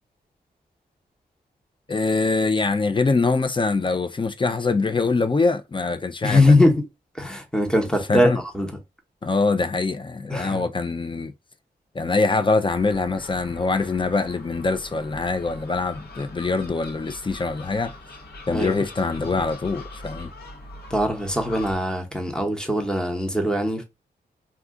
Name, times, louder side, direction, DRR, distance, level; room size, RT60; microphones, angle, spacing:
voice 1, 1.9-6.6 8.1-8.4 9.2-11.3 11.9-17.9 18.5-20.3, left 3 dB, 30° left, 0.5 m, -23 dB
voice 2, 6.2-6.9 7.1-8.7 10.3-10.6 18.5-18.8 20.9-23.8, left 1 dB, 5° left, 0.9 m, -21 dB
Gull seagull, 12.7-21.7, left 1 dB, 65° left, 1.0 m, -42 dB
2.4 x 2.3 x 3.6 m
cardioid pair, 65°, 18 cm